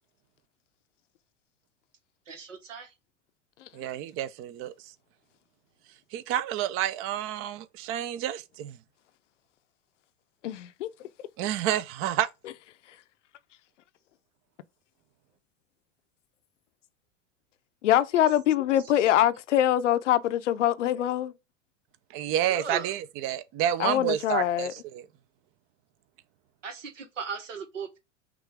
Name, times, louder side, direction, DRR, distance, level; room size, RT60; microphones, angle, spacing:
voice 1, 2.3-2.9 22.5-22.9 26.6-28.0, right 5 dB, 75° right, 1.3 m, -37 dB
voice 2, 3.7-4.9 6.1-8.8 11.4-12.3 22.1-25.1, right 11 dB, 35° right, 0.6 m, -29 dB
voice 3, 10.4-10.9 17.8-21.3 23.8-24.7, left 12 dB, 70° left, 0.6 m, -24 dB
6.0 x 2.6 x 3.4 m
figure-of-eight pair, 90°, 38 cm